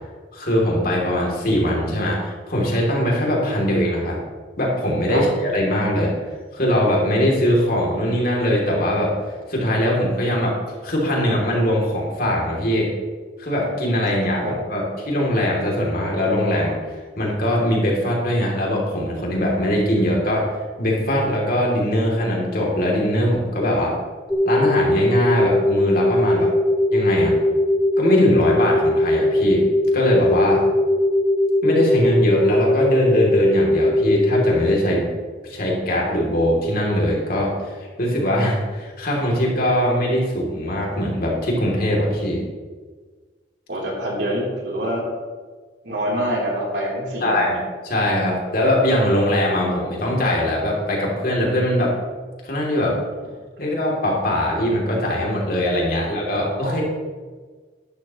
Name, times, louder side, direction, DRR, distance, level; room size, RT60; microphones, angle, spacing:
voice 1, 0.3-4.2 4.6-6.1 6.5-9.1 9.5-10.6 10.8-12.9 13.4-20.5 20.8-23.9 24.4-26.5 26.9-27.4 28.0-29.6 29.9-30.6 31.6-35.1 35.4-42.4 47.2-51.9 52.4-53.0 53.6-56.8, equal, 55° left, -2 dB, 3.0 m, -21 dB
sound 1, 24.3-34.6, left 1 dB, 5° left, 0.9 m, -19 dB
voice 2, 43.7-45.0 45.8-47.6 56.6-56.8, equal, 80° right, -4 dB, 3.6 m, -25 dB
12.5 x 10.5 x 3.1 m, 1.5 s
head